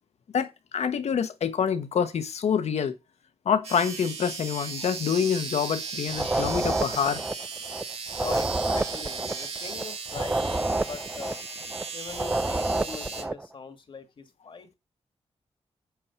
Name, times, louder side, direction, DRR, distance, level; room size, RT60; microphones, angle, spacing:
voice 1, 0.3-3.0 3.4-7.2 7.7-7.8, left 7 dB, 75° left, 1.2 m, -26 dB
sound 1, 3.6-13.2, right 5 dB, 65° right, 2.1 m, -36 dB
sound 2, 6.1-13.5, right 2 dB, 10° right, 0.4 m, -29 dB
voice 2, 8.2-11.4 11.9-14.7, left 5 dB, 50° left, 1.7 m, -41 dB
8.6 x 4.8 x 5.9 m
wide cardioid pair, 130°, 11 cm